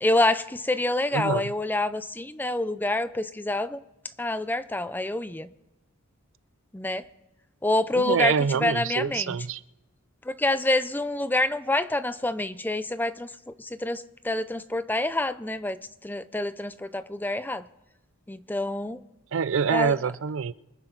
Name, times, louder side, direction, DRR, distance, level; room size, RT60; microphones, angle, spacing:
voice 1, 0.0-3.8 4.2-5.5 6.7-7.0 7.6-9.4 10.3-13.3 13.6-17.6 18.3-19.0 19.7-20.0, left 2 dB, 10° left, 12 dB, 0.5 m, -27 dB
voice 2, 1.1-1.5 7.9-9.6 19.3-20.5, right 6 dB, 65° right, 17 dB, 0.4 m, -26 dB
24.5 x 10.5 x 3.9 m, 1.0 s
head